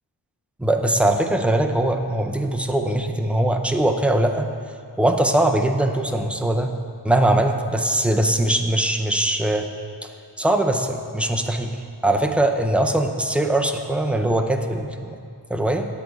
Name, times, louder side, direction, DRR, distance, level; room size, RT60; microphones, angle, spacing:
voice 1, 0.6-4.5 5.0-6.7 7.0-9.7 10.4-11.8 12.0-15.2 15.5-15.9, right 1 dB, 5° right, 5 dB, 0.4 m, -21 dB
9.0 x 8.3 x 4.6 m, 2.4 s
wide cardioid pair, 130°, 42 cm